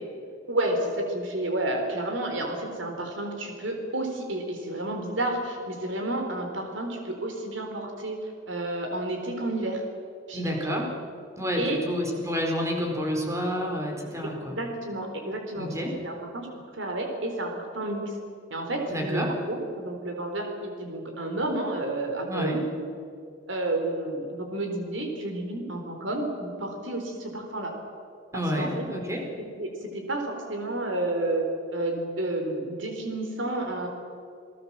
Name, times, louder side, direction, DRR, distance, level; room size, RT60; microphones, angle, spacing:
voice 1, 0.5-8.2 8.5-9.8 10.3-10.8 11.6-11.8 14.2-15.7 16.0-16.5 16.8-18.1 18.5-22.9 23.5-27.7 28.3-28.8 29.4-33.9, right 1 dB, 80° right, 3 dB, 4.0 m, -31 dB
voice 2, 10.3-10.9 11.4-14.6 15.6-16.0 18.9-19.3 22.3-22.6 28.3-29.3, equal, 15° right, 1 dB, 4.5 m, -29 dB
29.0 x 18.5 x 7.6 m, 2.4 s
head